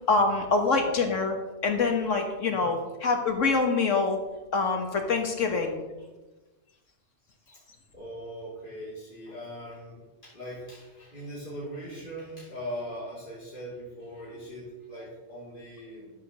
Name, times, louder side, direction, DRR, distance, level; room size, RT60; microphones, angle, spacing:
voice 1, 0.1-1.4 1.6-4.2 4.5-5.8, left 4 dB, 80° left, 4 dB, 1.8 m, -25 dB
voice 2, 7.9-16.1, equal, 40° left, -8 dB, 3.1 m, -40 dB
12.5 x 5.1 x 6.7 m, 1.2 s
omnidirectional pair, 1.3 m